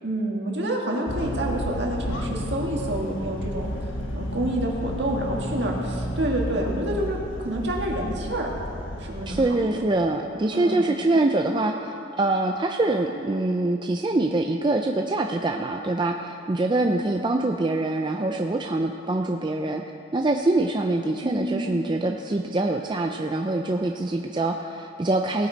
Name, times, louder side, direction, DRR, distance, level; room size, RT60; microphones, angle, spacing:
voice 1, 0.0-3.7 4.1-8.5 9.0-9.8 10.5-10.8 16.8-17.0 21.2-21.8, right 1 dB, 60° right, -1 dB, 1.9 m, -28 dB
sound 1, 1.1-9.4, equal, 90° left, 1.2 m, -32 dB
voice 2, 9.3-19.8 20.1-25.5, right 2 dB, 25° right, 3 dB, 0.4 m, -24 dB
18.0 x 9.3 x 4.0 m, 2.7 s
head